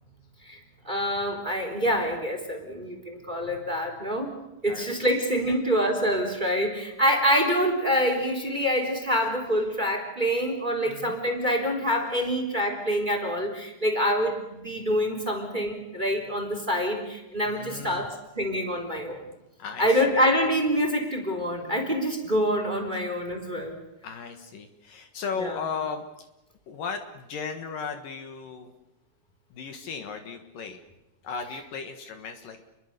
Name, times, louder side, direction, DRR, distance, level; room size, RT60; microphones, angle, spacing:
voice 1, 0.8-4.3 4.6-19.3 19.8-23.8 25.4-25.6, equal, 10° right, 4 dB, 3.6 m, -26 dB
voice 2, 4.6-5.7 9.1-9.3 10.9-11.2 12.2-12.3 17.5-18.1 19.6-20.2 24.0-26.3 26.7-28.7 29.5-30.8 31.2-32.6, left 5 dB, 65° left, 6 dB, 3.1 m, -36 dB
29.5 x 22.5 x 6.8 m, 0.94 s
omnidirectional pair, 4.5 m